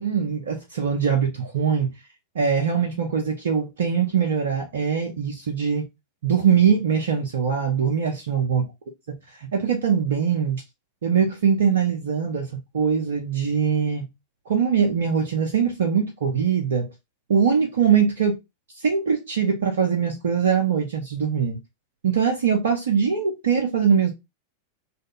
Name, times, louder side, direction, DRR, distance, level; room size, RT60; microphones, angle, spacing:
voice 1, 0.0-1.9 2.3-5.9 6.2-8.7 9.1-10.6 11.0-14.1 14.5-16.9 17.3-18.4 18.8-21.6 22.0-24.1, right 7 dB, 65° right, 0.5 m, -22 dB
2.5 x 2.4 x 2.7 m
figure-of-eight pair, 90°, 0 cm